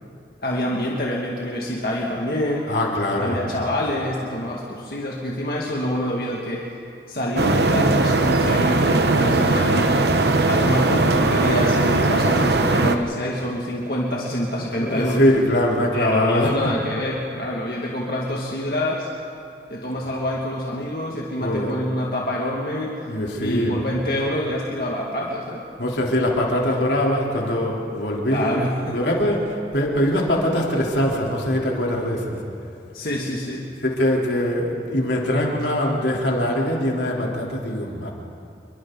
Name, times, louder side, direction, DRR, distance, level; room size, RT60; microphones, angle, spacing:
voice 1, 0.4-2.7 3.2-6.6 7.1-10.0 10.5-15.2 15.9-19.1 19.7-22.9 23.4-25.6 28.3-29.0 32.9-33.7 36.1-36.3, left 1 dB, 55° left, -4 dB, 2.1 m, -26 dB
voice 2, 2.7-3.4 14.6-16.7 21.4-21.7 23.1-23.8 25.8-28.6 28.9-32.4 33.8-38.1, left 1 dB, 85° left, -2 dB, 3.5 m, -22 dB
sound 1, 7.4-13.0, right 2 dB, 75° right, 1.0 m, -19 dB
28.5 x 23.5 x 4.0 m, 2.5 s
head